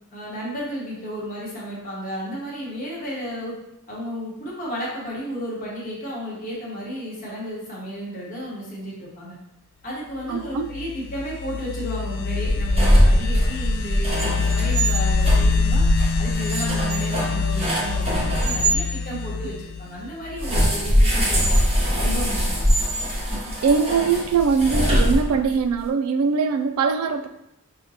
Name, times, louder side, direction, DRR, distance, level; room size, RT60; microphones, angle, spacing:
voice 1, 0.1-3.6 3.9-9.3 9.8-15.8 16.2-21.6 22.0-22.7, equal, 40° left, -5 dB, 1.0 m, -33 dB
voice 2, 10.3-10.7 19.1-19.5 23.6-27.3, right 5 dB, 85° right, 8 dB, 0.3 m, -22 dB
sound 1, 10.4-20.9, left 5 dB, 65° left, 0.3 m, -26 dB
sound 2, 12.4-18.8 20.4-25.6, equal, 30° right, 0.8 m, -21 dB
4.9 x 2.2 x 2.7 m, 0.83 s
head